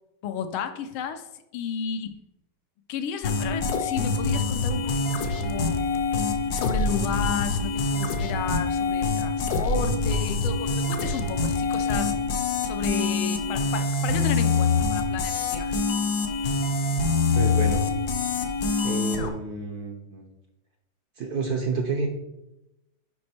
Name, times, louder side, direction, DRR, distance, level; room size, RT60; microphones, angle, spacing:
voice 1, 0.2-1.3 1.5-2.2 2.9-5.8 6.5-12.1 12.6-15.7, left 7 dB, 80° left, 8 dB, 1.5 m, -33 dB
sound 1, 3.2-19.3, left 3 dB, 60° left, 1.1 m, -25 dB
voice 2, 17.3-17.8 18.8-20.2 21.2-22.1, right 4 dB, 65° right, 3 dB, 1.0 m, -29 dB
6.4 x 5.1 x 4.2 m, 0.91 s
omnidirectional pair, 2.3 m